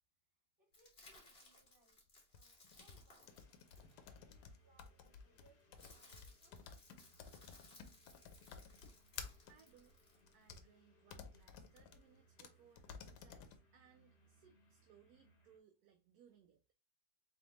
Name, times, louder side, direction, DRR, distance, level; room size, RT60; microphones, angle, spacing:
voice 1, 0.3-2.0 2.3-3.5 3.9-6.7, right 1 dB, 35° right, 2.5 m, -74 dB
sound 1, 0.7-4.5 5.4-10.6, left 2 dB, 35° left, 1.6 m, -64 dB
sound 2, 2.3-9.5 10.3-10.6 11.1-12.0 12.4-12.5 12.8-13.6, left 6 dB, 90° left, 1.2 m, -53 dB
sound 3, 3.3-15.6, equal, 65° left, 1.6 m, -72 dB
voice 2, 9.5-10.0 10.3-16.6, right 8 dB, 75° right, 1.0 m, -68 dB
4.1 x 3.4 x 2.9 m
omnidirectional pair, 1.7 m